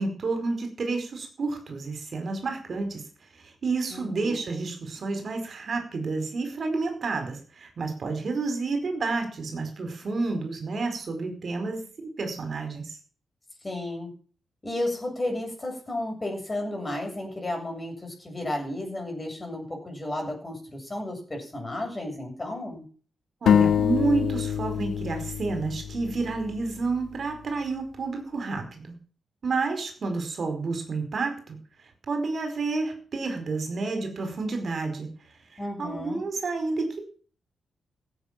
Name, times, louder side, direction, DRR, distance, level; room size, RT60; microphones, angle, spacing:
voice 1, 0.0-3.0 3.3-13.0 23.4-29.0 29.4-31.6 32.1-35.1 35.5-37.0, right 3 dB, 50° right, 6 dB, 4.9 m, -30 dB
voice 2, 3.9-4.5 13.6-14.1 14.6-22.8 35.6-36.2, left 1 dB, 25° left, 1 dB, 7.6 m, -33 dB
sound 1, 23.5-27.1, left 8 dB, 75° left, 0.9 m, -25 dB
16.0 x 8.8 x 7.6 m, 0.41 s
cardioid pair, 110°, 0 cm